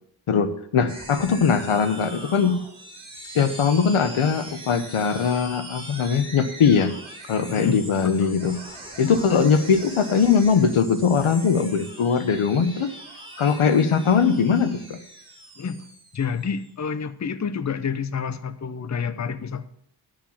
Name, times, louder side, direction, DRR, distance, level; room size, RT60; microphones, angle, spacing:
voice 1, 0.3-2.6 3.3-6.9 7.3-8.6 9.0-12.9 13.4-15.0, left 6 dB, 90° left, 10 dB, 1.0 m, -21 dB
sound 1, 0.9-16.7, right 1 dB, 10° right, 2.5 m, -41 dB
voice 2, 8.0-8.4 15.6-15.9 16.1-19.7, left 6 dB, 35° left, 13 dB, 0.7 m, -29 dB
12.0 x 5.2 x 7.0 m, 0.74 s
wide cardioid pair, 70°, 49 cm